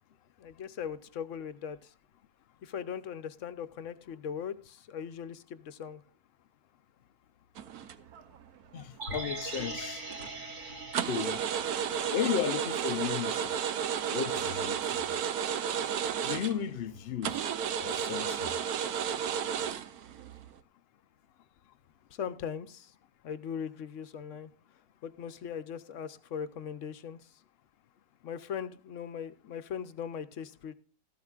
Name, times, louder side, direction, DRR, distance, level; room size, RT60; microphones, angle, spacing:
voice 1, 0.4-1.9 2.6-6.0 19.1-19.2 22.1-22.9 23.2-24.5 25.0-27.3 28.2-30.7, left 8 dB, 60° left, 0.9 m, -39 dB
sound 1, 7.6-8.4 8.8-9.7 10.1-10.4 10.9-16.8 17.2-20.5, right 8 dB, 70° right, 1.2 m, -33 dB
voice 2, 8.7-10.0 11.1-11.4 12.1-13.5 14.1-14.8 16.2-17.4 17.8-18.5, left 9 dB, 75° left, 0.5 m, -34 dB
sound 2, 9.0-13.2 13.5-13.6, right 2 dB, 45° right, 2.6 m, -42 dB
14.5 x 12.5 x 2.4 m
omnidirectional pair, 1.8 m